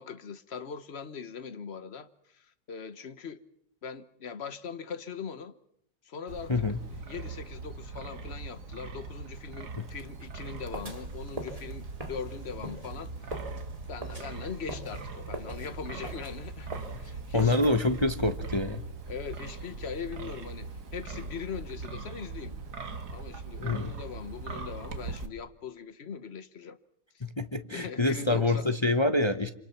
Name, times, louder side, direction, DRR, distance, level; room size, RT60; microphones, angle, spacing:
voice 1, 0.0-3.4 3.8-5.6 6.0-6.6 7.0-13.4 13.9-16.7 17.0-17.6 19.1-22.6 23.1-26.8 27.1-27.2 27.7-28.7, left 6 dB, 40° left, 1.3 m, -41 dB
Wind, 6.3-25.3, right 4 dB, 65° right, 2.2 m, -41 dB
sound 1, 10.7-18.1, right 1 dB, 20° right, 2.7 m, -43 dB
voice 2, 17.3-18.8 23.6-23.9 27.2-29.5, left 2 dB, 20° left, 0.8 m, -26 dB
27.0 x 26.0 x 5.9 m
omnidirectional pair, 1.9 m